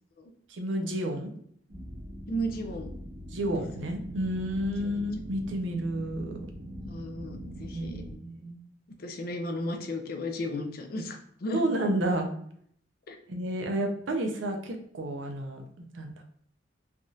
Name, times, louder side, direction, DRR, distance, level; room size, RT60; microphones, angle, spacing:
voice 1, 0.5-1.3 3.3-6.4 7.7-7.9 8.2-8.6 11.5-12.3 13.3-16.2, right 1 dB, 85° right, 4 dB, 0.6 m, -31 dB
sound 1, 1.7-8.1, equal, 55° right, 1.2 m, -42 dB
voice 2, 2.3-2.9 4.8-4.9 6.8-8.0 9.0-11.6 13.1-13.2, equal, 55° left, 5 dB, 0.4 m, -34 dB
3.4 x 2.4 x 2.6 m, 0.66 s
head